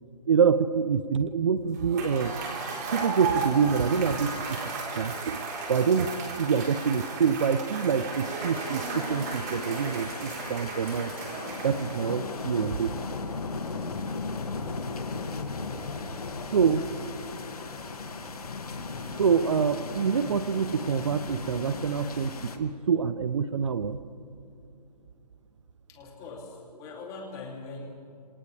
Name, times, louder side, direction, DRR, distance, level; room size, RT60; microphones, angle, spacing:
voice 1, 0.3-2.4 2.9-4.6 5.0-11.1 11.6-13.0 16.5-16.9 19.2-24.0, right 6 dB, 45° right, 12 dB, 0.8 m, -26 dB
Cheering / Applause / Crowd, 1.7-12.2, right 4 dB, 25° right, 4.2 m, -35 dB
sound 1, 7.9-22.6, left 4 dB, 65° left, 2.3 m, -37 dB
voice 2, 15.8-17.2 25.9-27.9, left 3 dB, 15° left, 0 dB, 3.0 m, -43 dB
30.0 x 27.5 x 3.5 m, 2.6 s
hypercardioid pair, 160°, 20 cm